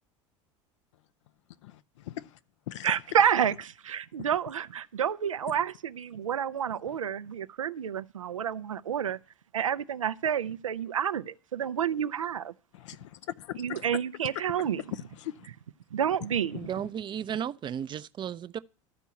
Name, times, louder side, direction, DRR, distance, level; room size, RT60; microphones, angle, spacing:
voice 1, 1.6-2.4 2.7-2.9 4.2-4.3 12.7-14.0 14.6-15.5 16.3-16.7, left 13 dB, 70° left, 0.5 m, -40 dB
voice 2, 2.8-4.7 5.0-9.2 9.5-12.5 13.6-14.8 15.9-16.6, right 8 dB, 90° right, 0.4 m, -29 dB
voice 3, 16.5-18.6, right 9 dB, 30° right, 0.4 m, -34 dB
12.5 x 4.5 x 8.1 m
hypercardioid pair, 80°, 16 cm